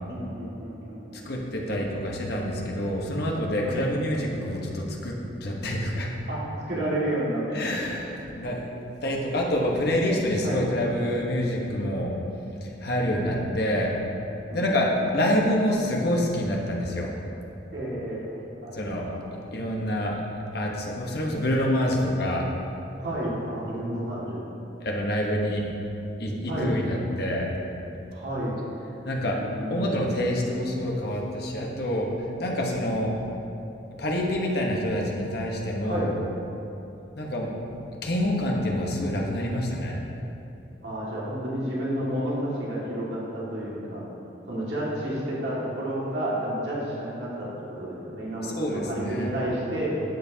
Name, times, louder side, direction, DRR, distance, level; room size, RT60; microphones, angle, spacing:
voice 1, 0.1-1.3 3.6-3.8 6.3-6.4 6.7-8.1 10.4-10.6 12.9-13.7 14.5-15.1 17.7-18.3 18.6-19.2 23.0-24.4 26.5-26.8 28.1-28.6 29.2-31.2 35.8-36.1 40.8-44.0 44.5-47.5 47.8-49.9, right 1 dB, 60° right, -7 dB, 2.1 m, -31 dB
voice 2, 1.2-6.1 7.5-8.7 9.0-12.1 12.6-13.9 14.5-17.1 18.7-19.0 19.5-20.2 20.5-22.5 24.8-25.7 26.2-27.5 29.0-29.4 29.7-32.1 32.4-33.1 34.0-36.1 37.2-37.6 38.0-39.9 48.4-49.3, equal, 55° left, -1 dB, 1.1 m, -27 dB
12.0 x 7.6 x 2.8 m, 2.9 s
head